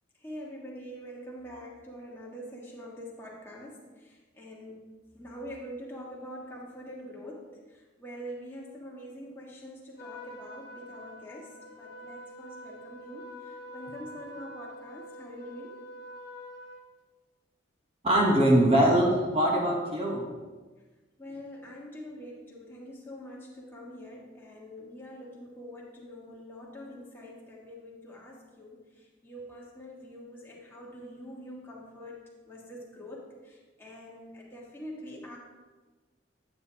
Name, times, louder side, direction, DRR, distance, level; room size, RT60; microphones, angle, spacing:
voice 1, 0.1-15.8 21.2-35.4, equal, 10° left, -4 dB, 1.5 m, -45 dB
Trumpet, 10.0-16.9, equal, 55° left, 1.2 m, -46 dB
voice 2, 18.0-20.3, right 1 dB, 30° right, -1 dB, 1.0 m, -22 dB
9.0 x 7.7 x 2.8 m, 1.3 s
head